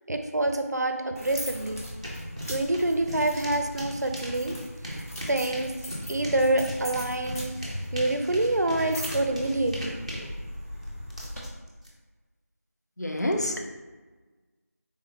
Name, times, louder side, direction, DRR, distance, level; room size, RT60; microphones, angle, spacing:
voice 1, 0.1-1.8 2.5-4.6 4.8-5.7 6.1-7.5 7.9-10.3, right 2 dB, 80° right, 6 dB, 0.5 m, -27 dB
sound 1, 1.2-11.4, equal, 65° left, 1.2 m, -38 dB
sound 2, 1.3-1.4 1.7-11.9, equal, 25° right, 0.5 m, -39 dB
voice 2, 13.0-13.6, left 1 dB, 85° left, 2 dB, 0.6 m, -27 dB
3.7 x 3.3 x 2.6 m, 1.3 s
figure-of-eight pair, 175°, 9 cm